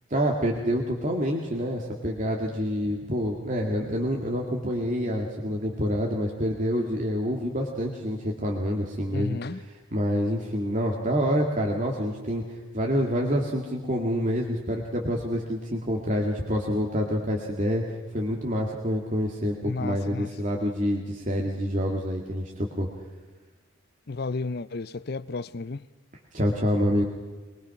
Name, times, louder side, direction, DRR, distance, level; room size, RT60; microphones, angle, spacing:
voice 1, 0.1-22.9 26.3-27.0, equal, 35° right, 2.0 m, -27 dB
voice 2, 9.1-9.6 19.7-20.3 24.1-25.9, left 3 dB, 50° left, 0.6 m, -32 dB
23.5 x 20.5 x 5.9 m
head